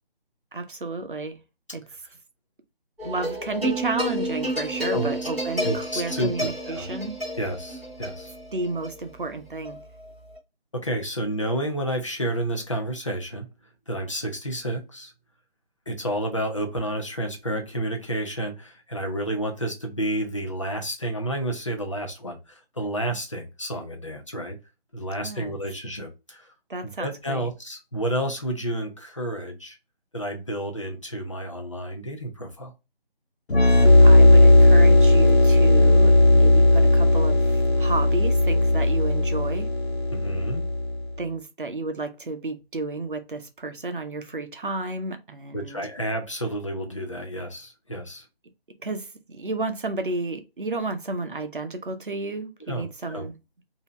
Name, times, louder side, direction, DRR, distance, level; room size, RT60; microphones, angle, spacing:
voice 1, 0.5-1.4 1.7-1.8 3.0-7.2 8.5-9.8 25.2-25.5 26.7-27.5 34.0-39.7 41.2-45.8 48.8-53.4, right 3 dB, 55° right, 0.7 m, -32 dB
sound 1, 3.0-10.4, equal, ahead, 0.9 m, -31 dB
voice 2, 5.6-6.9 7.4-8.3 10.7-13.5 13.9-15.1 15.9-24.6 24.9-26.5 27.0-29.8 30.1-32.7 40.1-40.6 45.5-48.2 52.7-53.3, right 1 dB, 30° left, 0.6 m, -30 dB
sound 2, 33.5-41.0, left 1 dB, 75° left, 1.1 m, -16 dB
3.1 x 2.7 x 3.0 m
figure-of-eight pair, 160°, 31 cm